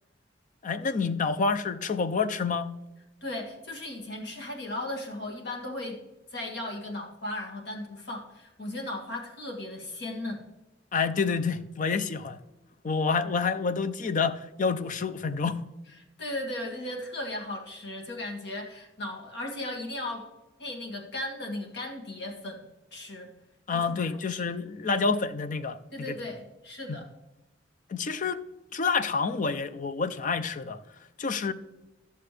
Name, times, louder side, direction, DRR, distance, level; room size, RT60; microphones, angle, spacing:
voice 1, 0.6-2.7 10.9-12.4 12.8-15.6 23.7-26.1 26.9-27.0 27.9-28.4 28.7-30.8 31.2-31.5, left 5 dB, 45° left, 0.5 m, -28 dB
voice 2, 3.2-6.0 6.3-10.5 16.2-20.3 20.6-23.3 23.7-24.0 24.3-24.4 25.9-27.1, left 1 dB, 60° left, 1.9 m, -36 dB
13.5 x 6.7 x 3.3 m
head